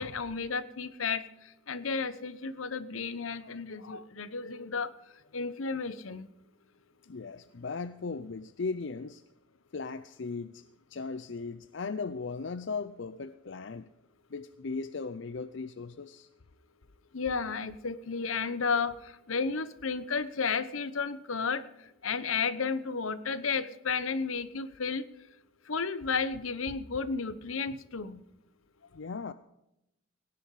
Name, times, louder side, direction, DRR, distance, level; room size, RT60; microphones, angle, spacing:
voice 1, 0.0-4.9 5.3-6.3 17.1-25.1 25.7-28.2, left 5 dB, 85° left, 14 dB, 1.0 m, -33 dB
voice 2, 7.1-9.2 9.7-13.9 14.3-16.3 28.9-29.3, left 4 dB, 60° left, 13 dB, 0.5 m, -37 dB
18.0 x 10.5 x 4.9 m, 0.85 s
head